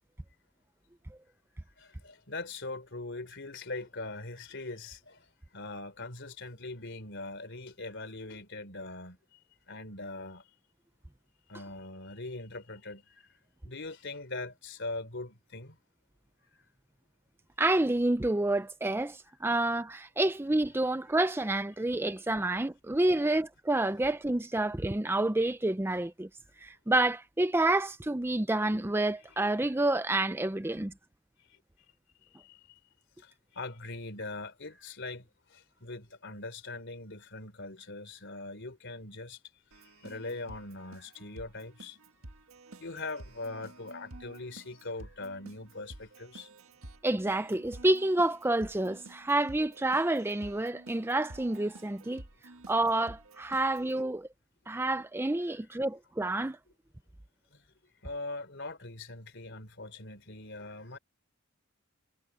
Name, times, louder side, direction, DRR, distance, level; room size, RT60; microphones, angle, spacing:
voice 1, 1.8-5.3 5.5-9.2 9.7-10.4 11.5-13.3 13.6-15.8 32.4-32.6 33.2-35.2 35.5-39.4 40.0-42.0 42.8-46.5 57.5-57.6 58.0-61.0, left 2 dB, 55° left, 3.8 m, -41 dB
voice 2, 17.6-26.3 26.6-30.9 47.0-52.2 52.7-54.3 54.7-56.6, right 2 dB, 10° right, 0.5 m, -28 dB
Keyboard (musical), 39.7-54.0, right 2 dB, 85° right, 1.7 m, -51 dB
head